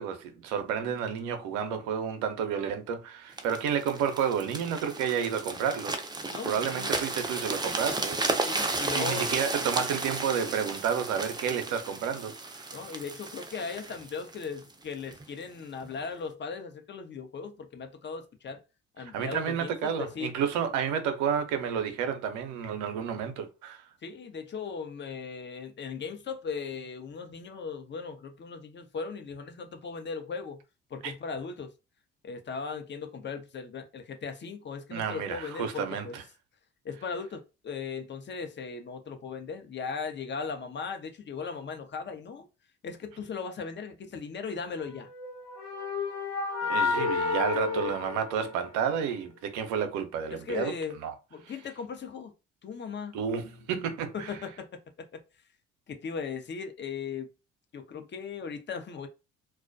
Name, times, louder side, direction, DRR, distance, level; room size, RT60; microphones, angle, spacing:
voice 1, 0.0-6.0 6.4-8.6 8.9-12.9 19.1-23.9 31.0-31.1 34.9-36.2 46.7-50.7 51.0-51.1 53.1-54.3, right 7 dB, 70° right, 0.6 m, -31 dB
sound 1, 3.4-15.2 15.8-16.0, right 3 dB, 15° right, 0.6 m, -33 dB
voice 2, 6.3-6.9 8.4-9.3 12.7-18.6 19.0-20.3 24.0-30.6 30.9-31.7 32.2-36.2 36.8-42.5 42.8-45.1 50.3-51.0 51.3-52.3 52.6-53.2 54.1-54.7 55.0-55.2 55.9-57.3 57.7-59.1, left 5 dB, 35° left, 0.7 m, -38 dB
sound 2, 45.1-49.0, left 4 dB, 60° left, 0.9 m, -30 dB
2.3 x 2.1 x 2.5 m
hypercardioid pair, 55°, 30 cm